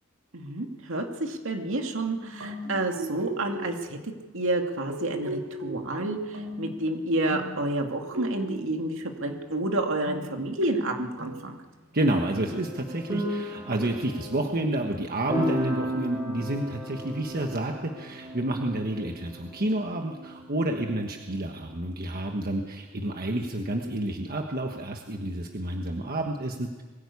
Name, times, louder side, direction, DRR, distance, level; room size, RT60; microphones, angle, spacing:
voice 1, 0.3-11.6, right 2 dB, 65° right, 3 dB, 2.4 m, -29 dB
sound 1, 1.6-1.8 2.1-3.9 4.9-7.0 7.3-8.8 9.2-9.7 10.0-11.9, right 1 dB, 90° right, 4.9 m, -39 dB
voice 2, 11.9-26.8, right 1 dB, 45° right, 3 dB, 1.4 m, -29 dB
sound 2, 12.0-21.6, right 1 dB, 15° right, 5.6 m, -35 dB
22.5 x 15.5 x 8.4 m, 1.3 s
head